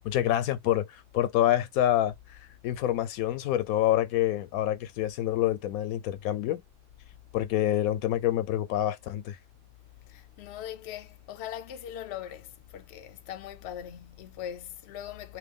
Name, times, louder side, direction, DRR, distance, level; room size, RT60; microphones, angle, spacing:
voice 1, 0.0-2.1 2.6-6.6 7.3-9.4, left 12 dB, 85° left, 1.0 m, -27 dB
voice 2, 10.1-15.4, left 10 dB, 60° left, 0.8 m, -40 dB
3.1 x 2.2 x 3.5 m
omnidirectional pair, 1.5 m